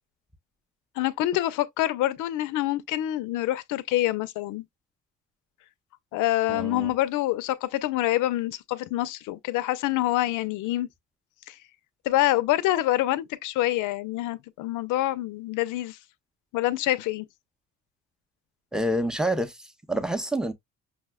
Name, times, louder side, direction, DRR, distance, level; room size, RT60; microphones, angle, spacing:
voice 1, 1.0-4.6 6.1-10.9 11.5-11.6 12.1-16.0 16.5-17.3, left 15 dB, 90° left, 0.5 m, -26 dB
voice 2, 6.5-6.9 18.7-20.5, right 1 dB, ahead, 0.6 m, -28 dB
5.8 x 2.1 x 2.2 m
cardioid pair, 90°, 30 cm